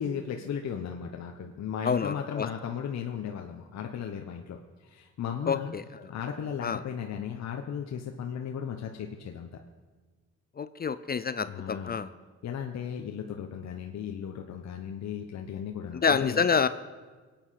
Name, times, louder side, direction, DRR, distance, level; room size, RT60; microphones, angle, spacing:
voice 1, 0.0-5.7 6.1-9.6 11.5-12.0 12.4-16.4, left 8 dB, 60° left, 3 dB, 1.2 m, -36 dB
voice 2, 1.8-2.5 5.5-5.8 6.6-6.8 10.6-12.1 16.0-16.7, left 6 dB, 30° left, 13 dB, 0.5 m, -27 dB
22.5 x 9.0 x 5.8 m, 1.4 s
cardioid pair, 90°, 30 cm